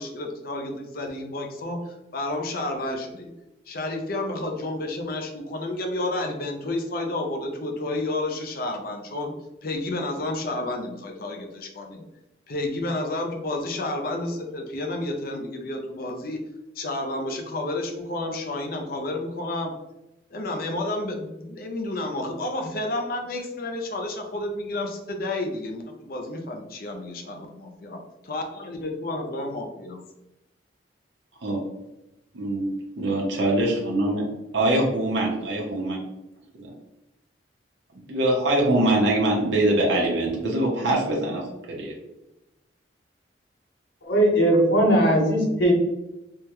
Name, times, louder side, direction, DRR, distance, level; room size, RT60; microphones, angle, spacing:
voice 1, 0.0-3.3 3.7-9.3 9.6-12.0 12.5-16.4 16.7-19.7 20.3-30.0, left 2 dB, 50° left, 3 dB, 0.5 m, -31 dB
voice 2, 32.3-34.2 34.5-36.0 36.5-36.7 37.9-42.0, right 1 dB, 80° right, -2 dB, 0.7 m, -23 dB
voice 3, 44.0-45.7, right 1 dB, 85° left, -2 dB, 0.9 m, -19 dB
3.5 x 2.2 x 2.9 m, 0.93 s
head